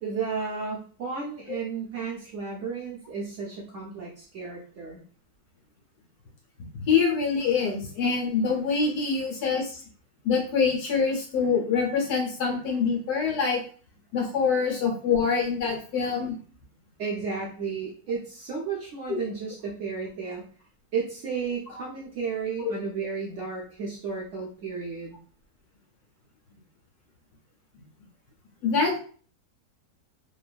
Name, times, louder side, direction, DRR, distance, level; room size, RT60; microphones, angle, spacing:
voice 1, 0.0-5.0 17.0-20.4 20.9-25.2, right 5 dB, 65° right, -3 dB, 0.8 m, -33 dB
voice 2, 6.8-9.8 10.2-13.6 14.1-16.4 19.1-19.2 22.6-22.7 28.6-29.0, left 5 dB, 70° left, 0 dB, 1.3 m, -25 dB
2.9 x 2.2 x 2.3 m, 0.42 s
omnidirectional pair, 1.7 m